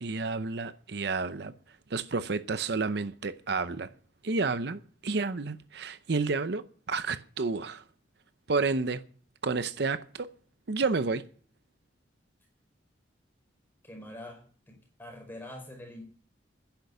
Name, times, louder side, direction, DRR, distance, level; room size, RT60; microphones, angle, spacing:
voice 1, 0.0-1.5 1.9-3.9 4.2-7.8 8.5-9.0 9.4-10.3 10.7-11.2, right 4 dB, 60° right, 0.7 m, -30 dB
voice 2, 13.8-14.4 15.0-16.0, left 1 dB, 10° left, 5.1 m, -43 dB
10.5 x 10.5 x 6.8 m
head